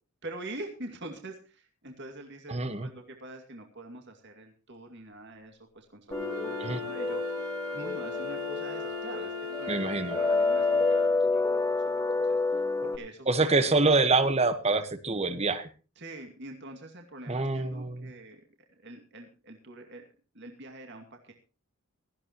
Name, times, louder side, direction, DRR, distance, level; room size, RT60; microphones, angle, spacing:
voice 1, 0.2-6.6 6.8-13.6 16.0-18.4 18.7-20.0 20.3-21.3, right 2 dB, 50° right, 3 dB, 2.4 m, -45 dB
voice 2, 2.5-2.9 6.6-6.8 9.7-10.2 12.8-12.9 13.3-15.7 17.3-18.1, right 3 dB, 30° right, 11 dB, 1.3 m, -26 dB
sound 1, 6.1-13.0, left 3 dB, 15° left, 1.4 m, -29 dB
Wind instrument woodwind instrument, 6.1-11.2, left 4 dB, 85° right, 4.8 m, -38 dB
18.0 x 14.5 x 3.0 m, 0.34 s
head